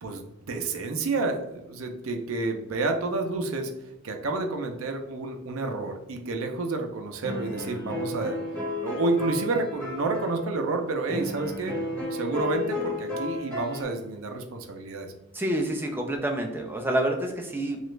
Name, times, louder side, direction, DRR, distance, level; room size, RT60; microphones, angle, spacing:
voice 1, 0.0-3.7 4.0-8.4 8.8-11.8 12.1-15.1, right 3 dB, 70° right, 4 dB, 0.5 m, -29 dB
sound 1, 7.2-10.5 11.1-13.8, left 2 dB, 10° left, 1.3 m, -33 dB
voice 2, 15.3-17.8, right 1 dB, 10° right, 2 dB, 0.3 m, -28 dB
3.0 x 2.3 x 3.1 m, 0.89 s
head